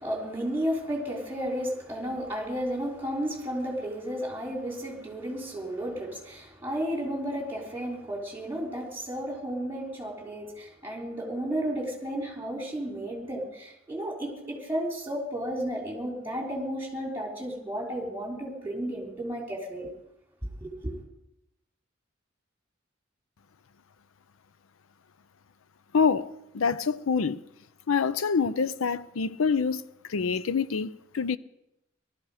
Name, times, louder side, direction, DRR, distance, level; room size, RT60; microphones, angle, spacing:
voice 1, 0.0-19.9 20.6-21.0, equal, 10° right, 3.4 m, -33 dB
voice 2, 25.9-27.4 27.9-29.8 30.1-31.4, left 5 dB, 85° left, 0.6 m, -26 dB
19.0 x 13.0 x 4.9 m
head